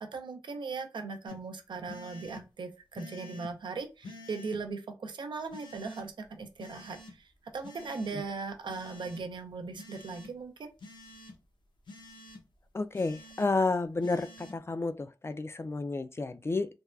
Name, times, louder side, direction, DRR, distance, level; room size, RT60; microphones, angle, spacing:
voice 1, 0.0-7.3 7.5-10.7, right 4 dB, 80° right, 0.5 m, -39 dB
sound 1, 1.3-1.4 1.9-2.4 3.0-3.5 4.0-4.6 5.5-6.0 6.6-7.1 7.6-8.2 8.7-9.2 9.8-10.3 10.8-11.3 11.9-12.4 12.9-13.5 14.0-14.5, left 1 dB, 75° left, 0.7 m, -48 dB
voice 2, 12.7-14.3 14.5-16.7, left 3 dB, 35° left, 0.3 m, -31 dB
3.3 x 2.2 x 2.3 m
cardioid pair, 55°, 8 cm